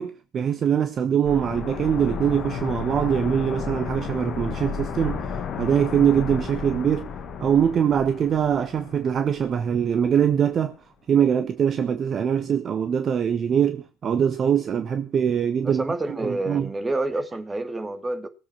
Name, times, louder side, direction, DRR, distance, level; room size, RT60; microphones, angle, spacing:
voice 1, 0.0-5.2 5.6-7.1 7.4-10.8 11.1-15.8 16.2-16.7, right 8 dB, 45° right, 1.2 m, -23 dB
sound 1, 1.3-10.0 10.2-10.3, left 6 dB, 45° left, 1.6 m, -33 dB
voice 2, 15.6-18.3, right 2 dB, 20° right, 2.3 m, -28 dB
19.0 x 7.8 x 6.0 m
figure-of-eight pair, 55°, 0 cm